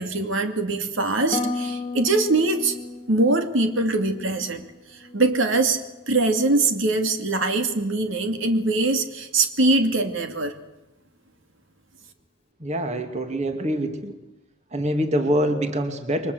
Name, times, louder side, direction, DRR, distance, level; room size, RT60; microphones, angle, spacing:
voice 1, 0.0-2.8 3.1-4.6 4.9-5.8 6.1-10.5, right 2 dB, 65° right, 7 dB, 2.6 m, -22 dB
Harp, 1.3-5.4 5.7-6.3 6.8-7.1, left 3 dB, 30° left, 1.9 m, -34 dB
voice 2, 12.6-14.2 14.7-16.3, equal, 35° right, 7 dB, 2.3 m, -25 dB
29.0 x 23.5 x 8.1 m, 0.96 s
head